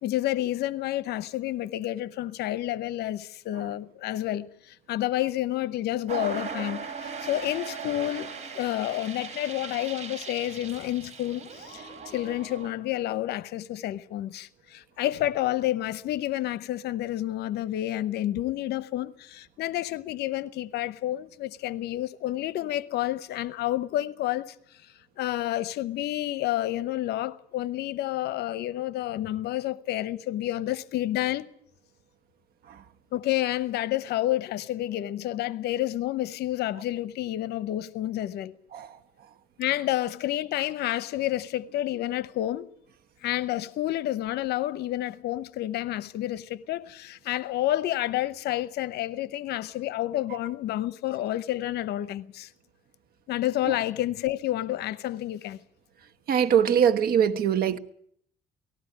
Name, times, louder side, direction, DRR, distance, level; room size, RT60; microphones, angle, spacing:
voice 1, 0.0-24.8 25.2-31.5 33.1-38.5 39.6-42.7 43.2-52.5 53.3-55.6, left 14 dB, 75° left, 0.8 m, -29 dB
sound 1, 6.1-12.7, right 5 dB, 40° right, 4.9 m, -38 dB
voice 2, 56.3-57.8, right 8 dB, 65° right, 1.3 m, -22 dB
18.5 x 15.0 x 10.0 m
cardioid pair, 110°, 17 cm